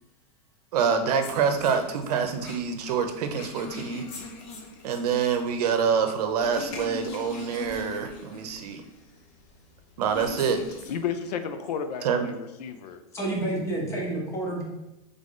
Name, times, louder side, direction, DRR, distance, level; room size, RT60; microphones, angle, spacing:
voice 1, 0.7-4.1 4.8-8.8 10.0-10.6 12.0-12.3, right 6 dB, 75° right, 7 dB, 0.7 m, -26 dB
sound 1, 1.2-11.0, left 2 dB, 45° left, 0.9 m, -42 dB
voice 2, 10.9-13.0, left 7 dB, 85° left, 9 dB, 0.6 m, -32 dB
voice 3, 13.1-14.6, right 2 dB, 15° left, -1 dB, 0.9 m, -29 dB
3.7 x 3.5 x 3.7 m, 0.94 s
supercardioid pair, 155°, 20 cm